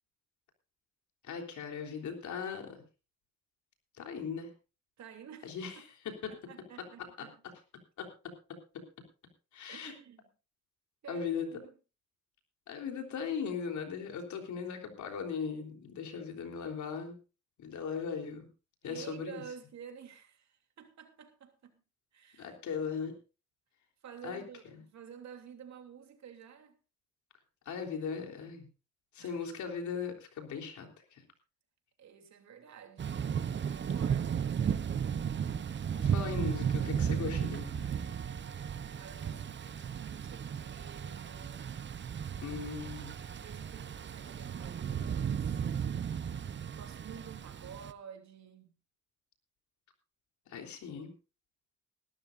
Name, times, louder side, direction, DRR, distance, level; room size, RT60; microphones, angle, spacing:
voice 1, 1.2-2.8 4.0-4.5 5.4-5.8 6.1-6.3 8.0-8.1 9.5-9.9 11.1-11.5 12.7-17.2 17.6-18.5 18.8-19.4 22.4-23.1 24.2-24.4 24.7-24.8 27.7-28.7 29.1-31.2 36.0-37.9 42.4-43.1 50.5-51.1, left 6 dB, 70° left, 3.6 m, -38 dB
voice 2, 5.0-5.6 6.3-7.4 9.7-10.2 11.0-11.7 18.8-21.8 22.1-22.6 24.0-26.8 29.2-29.5 32.0-33.2 33.7-34.9 38.9-41.8 43.3-45.6 46.7-48.8, right 7 dB, 65° right, 3.0 m, -50 dB
Thunder / Rain, 33.0-47.9, right 8 dB, 40° right, 0.8 m, -35 dB
20.5 x 12.5 x 2.6 m
cardioid pair, 90°, 30 cm